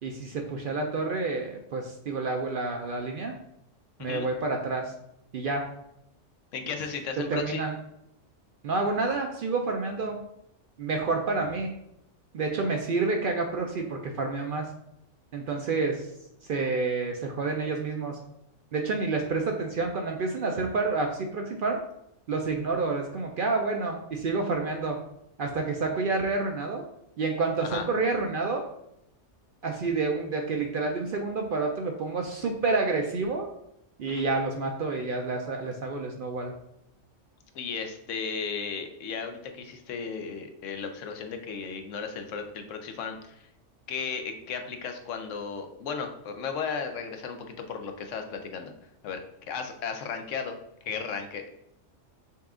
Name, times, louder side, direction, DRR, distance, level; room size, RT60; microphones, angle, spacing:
voice 1, 0.0-3.3 4.0-4.9 5.3-5.6 7.3-7.7 8.6-10.2 10.8-11.7 12.3-14.7 15.3-16.1 16.4-18.2 18.7-21.8 22.3-25.0 25.4-26.8 27.2-28.6 29.6-33.5 34.0-36.5, right 3 dB, 60° right, 3 dB, 0.6 m, -29 dB
voice 2, 6.5-7.6 27.6-27.9 34.1-34.3 37.5-43.5 43.9-48.7 49.0-51.5, left 5 dB, 85° left, 5 dB, 1.0 m, -35 dB
5.6 x 2.3 x 3.6 m, 0.79 s
omnidirectional pair, 1.3 m